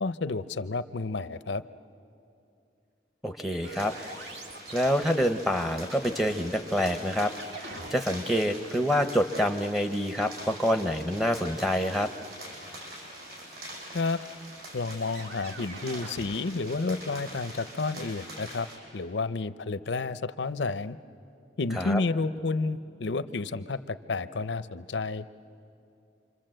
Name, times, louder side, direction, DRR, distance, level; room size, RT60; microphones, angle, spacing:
voice 1, 0.0-1.6 13.9-14.2 14.7-18.7 18.9-21.0 21.6-25.3, left 3 dB, 80° left, 13 dB, 0.6 m, -30 dB
voice 2, 3.2-3.9 4.7-7.3 7.6-12.1 21.7-22.0, equal, ahead, 6 dB, 0.7 m, -27 dB
sound 1, 3.6-8.2 11.9-12.2 13.4-13.6 14.2-14.3 14.6-16.4, right 3 dB, 80° right, 1.9 m, -46 dB
sound 2, 3.8-18.8, right 1 dB, 55° right, 6.2 m, -44 dB
27.5 x 24.5 x 7.7 m, 2.6 s
head